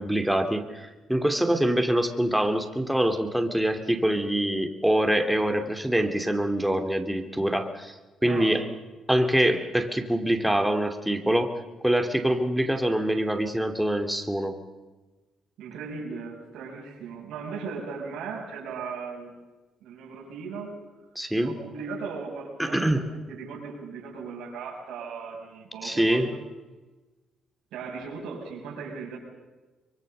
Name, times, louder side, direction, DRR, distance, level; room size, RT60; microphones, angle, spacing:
voice 1, 0.0-7.9 8.2-8.7 9.1-14.6 21.2-21.6 22.6-23.0 25.8-26.3, right 1 dB, 5° right, 6 dB, 2.7 m, -25 dB
voice 2, 8.2-8.6 15.6-19.4 19.8-20.7 21.4-26.4 27.7-29.2, right 5 dB, 85° right, -2 dB, 6.6 m, -37 dB
24.0 x 23.0 x 6.7 m, 1.2 s
cardioid pair, 90°, 0 cm